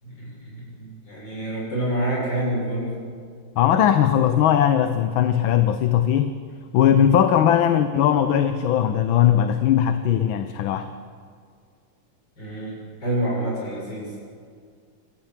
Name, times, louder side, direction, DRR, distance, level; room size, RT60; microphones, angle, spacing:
voice 1, 0.0-2.9 12.4-14.1, right 1 dB, 60° left, -4 dB, 7.8 m, -28 dB
voice 2, 3.6-6.3 6.7-10.9, left 10 dB, 75° left, 9 dB, 1.6 m, -19 dB
27.0 x 13.5 x 7.4 m, 2.1 s
omnidirectional pair, 2.3 m